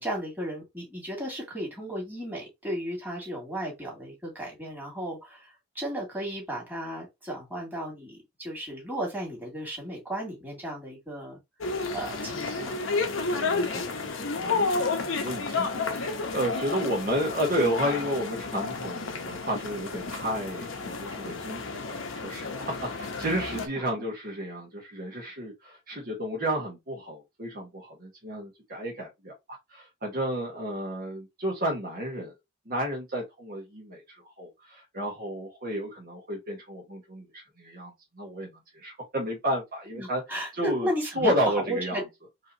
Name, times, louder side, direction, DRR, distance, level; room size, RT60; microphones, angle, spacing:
voice 1, 0.0-11.4 11.9-12.8 23.5-24.1 40.0-42.0, equal, 10° right, 2.3 m, -34 dB
sound 1, 11.6-23.7, left 4 dB, 90° left, 0.9 m, -31 dB
voice 2, 13.1-32.3 32.6-40.2 40.5-40.9 41.1-42.0, equal, 50° right, 1.4 m, -32 dB
4.8 x 2.8 x 2.7 m
head